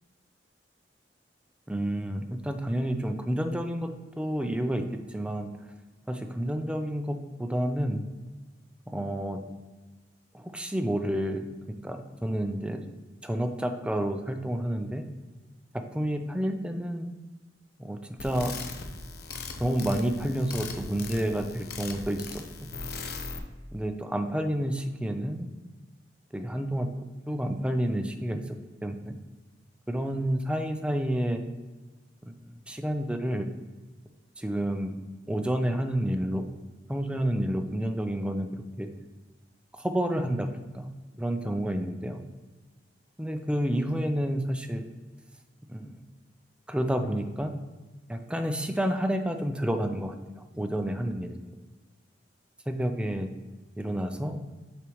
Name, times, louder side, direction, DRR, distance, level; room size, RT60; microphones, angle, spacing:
voice 1, 1.7-3.9 4.2-5.5 6.1-8.1 8.9-9.4 10.3-12.8 13.2-15.0 15.9-17.1 17.8-18.5 19.6-22.4 23.7-25.5 26.3-26.9 27.3-29.2 29.9-31.4 32.2-32.3 32.7-33.5 34.4-34.9 35.3-36.4 36.9-38.9 39.8-40.5 40.7-40.9 41.2-42.2 43.2-44.9 45.7-46.0 46.7-47.5 48.1-50.1 50.5-51.4 52.7-53.3 53.8-54.4, equal, 5° right, 6 dB, 0.5 m, -29 dB
sound 1, 18.2-23.4, left 4 dB, 60° left, 0.8 m, -39 dB
6.7 x 6.2 x 3.1 m, 1.2 s
head